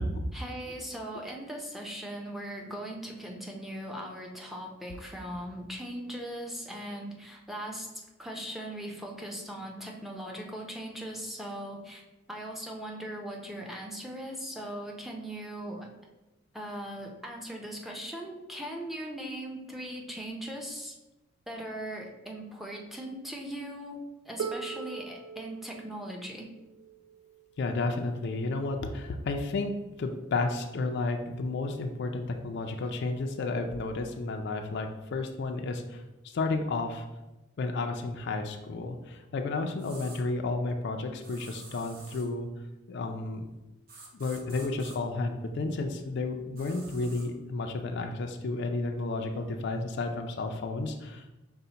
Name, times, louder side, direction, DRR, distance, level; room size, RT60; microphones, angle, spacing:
voice 1, 0.3-12.0 12.3-15.9 16.5-21.0 21.5-24.0 24.3-26.5, right 1 dB, ahead, 0 dB, 0.5 m, -39 dB
Harp, 24.4-30.2 31.2-31.3, right 6 dB, 85° right, 0.3 m, -43 dB
voice 2, 27.6-29.7 30.0-37.0 37.6-42.5 42.9-43.5 44.1-51.3, left 3 dB, 60° left, 5 dB, 0.4 m, -32 dB
sound 1, 39.8-40.2 41.2-42.3 43.9-45.0 46.6-47.3, right 3 dB, 45° right, 0.9 m, -49 dB
5.5 x 2.1 x 3.9 m, 1.0 s
head